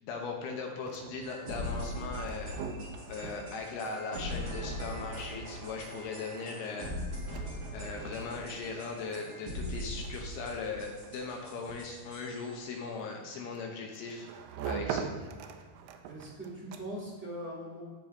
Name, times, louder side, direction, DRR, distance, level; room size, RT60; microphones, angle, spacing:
voice 1, 0.0-2.6 3.1-6.9 7.7-14.3 14.6-15.2, left 4 dB, 80° left, 1 dB, 2.8 m, -39 dB
sound 1, 0.7-17.2, right 7 dB, 85° right, 2.6 m, -45 dB
sound 2, 1.2-12.6, equal, 30° right, 1.5 m, -41 dB
voice 2, 16.0-17.8, right 1 dB, 5° right, -6 dB, 1.2 m, -41 dB
15.0 x 5.5 x 2.7 m, 1.5 s
omnidirectional pair, 4.6 m